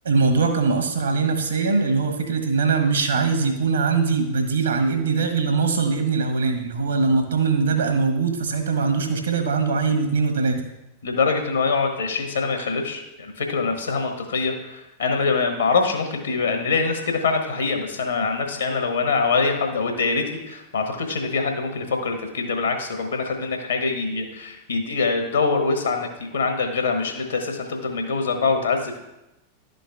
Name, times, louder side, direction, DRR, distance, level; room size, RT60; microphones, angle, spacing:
voice 1, 0.0-10.6, right 4 dB, 70° right, 5 dB, 1.1 m, -22 dB
voice 2, 11.0-29.0, left 4 dB, 70° left, 4 dB, 1.2 m, -24 dB
11.5 x 3.9 x 3.5 m, 0.94 s
figure-of-eight pair, 90°, 0 cm